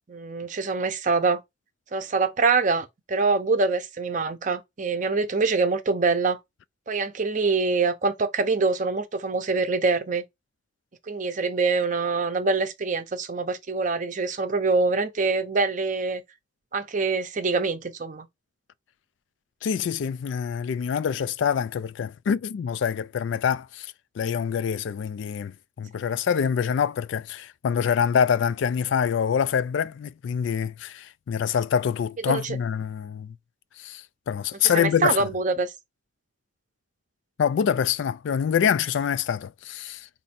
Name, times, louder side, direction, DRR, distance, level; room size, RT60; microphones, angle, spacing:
voice 1, 0.1-1.4 1.9-6.4 6.9-10.2 11.1-16.2 16.7-18.3 32.3-32.6 34.7-35.7, right 4 dB, 40° right, 0.6 m, -25 dB
voice 2, 19.6-33.4 33.8-35.3 37.4-40.1, left 7 dB, 70° left, 0.3 m, -25 dB
4.2 x 2.6 x 4.1 m
head